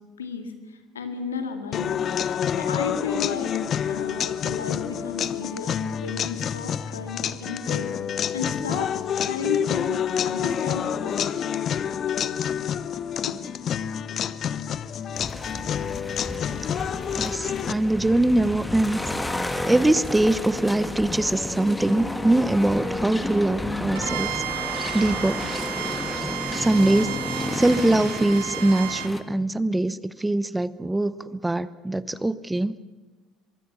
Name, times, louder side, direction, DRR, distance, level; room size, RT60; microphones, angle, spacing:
voice 1, 0.2-2.1 2.6-3.5 3.9-7.9 8.3-8.9 9.2-11.4 13.3-13.4, left 5 dB, 80° left, 7 dB, 2.3 m, -33 dB
sound 1, 1.7-17.7, left 8 dB, 45° left, 0.8 m, -28 dB
sound 2, 15.1-29.2, left 1 dB, 10° left, 2.1 m, -31 dB
voice 2, 17.1-19.0 19.6-24.3 24.9-25.4 26.5-27.2 27.5-32.8, right 1 dB, 10° right, 17 dB, 0.9 m, -22 dB
Bowed string instrument, 24.0-29.1, right 14 dB, 70° right, 1.1 m, -33 dB
24.0 x 23.0 x 7.2 m, 1.2 s
figure-of-eight pair, 60°, 0 cm